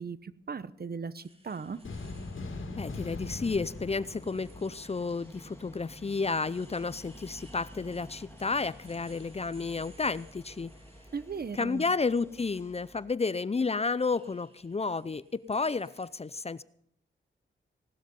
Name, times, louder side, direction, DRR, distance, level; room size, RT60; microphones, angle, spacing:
voice 1, 0.0-1.8 11.1-11.8, right 5 dB, 50° right, 16 dB, 0.9 m, -37 dB
sound 1, 1.2-11.8 12.3-12.9 13.4-16.1, right 1 dB, 30° right, 3.2 m, -61 dB
sound 2, 1.6-13.1, equal, 10° left, 3.3 m, -52 dB
sound 3, 1.8-5.3, left 3 dB, 85° left, 2.2 m, -40 dB
voice 2, 2.7-10.7 11.5-16.6, left 4 dB, 30° left, 19 dB, 0.6 m, -31 dB
17.5 x 12.5 x 5.4 m, 0.73 s
wide cardioid pair, 80°, 20 cm